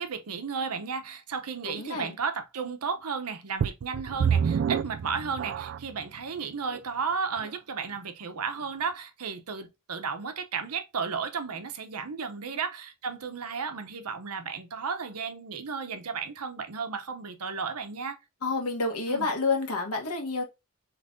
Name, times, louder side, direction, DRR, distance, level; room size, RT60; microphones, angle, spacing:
voice 1, 0.0-18.2 19.1-19.3, right 5 dB, 80° right, 0.8 m, -34 dB
voice 2, 1.6-2.1 18.4-20.4, left 3 dB, 75° left, 1.3 m, -29 dB
sound 1, 3.6-6.0 6.7-6.8 7.4-7.5, right 7 dB, 55° right, 0.3 m, -28 dB
3.7 x 3.2 x 3.7 m
head